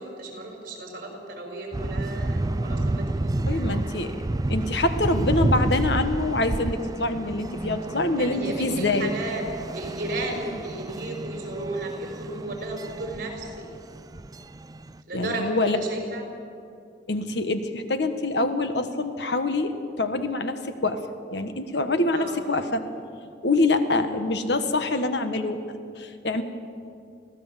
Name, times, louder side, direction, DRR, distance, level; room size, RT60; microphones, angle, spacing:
voice 1, 0.0-4.1 8.2-9.5 9.7-13.7 15.1-16.2 22.1-22.4, right 2 dB, 55° right, 1 dB, 5.9 m, -34 dB
sound 1, 1.7-15.0, right 2 dB, 20° right, 0.4 m, -30 dB
voice 2, 3.5-4.1 4.5-9.1 15.1-15.8 17.1-21.0 21.3-22.9 23.4-25.6 26.0-26.4, left 2 dB, 70° left, 8 dB, 1.4 m, -25 dB
24.5 x 16.5 x 7.5 m, 2.4 s
head